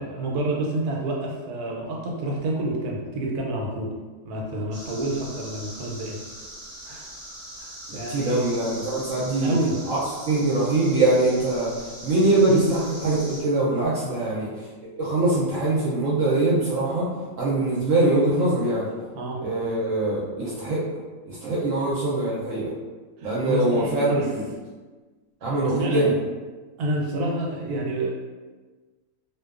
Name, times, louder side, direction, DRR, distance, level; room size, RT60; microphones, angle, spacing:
voice 1, 0.0-3.9 4.2-6.2 6.9-7.1 7.6-8.5 9.4-9.7 12.5-12.7 14.1-14.4 19.1-19.4 23.2-24.2 25.6-26.1 26.8-28.1, right 1 dB, 90° right, -1 dB, 1.1 m, -29 dB
sound 1, 4.7-13.4, right 1 dB, 40° right, 0.7 m, -41 dB
voice 2, 7.9-9.5 9.9-10.0 10.2-14.7 15.0-17.1 17.3-18.9 19.4-20.9 21.3-22.7 23.2-24.5 25.4-26.1, right 2 dB, 70° right, -7 dB, 0.9 m, -23 dB
2.6 x 2.2 x 2.3 m, 1.3 s
omnidirectional pair, 1.6 m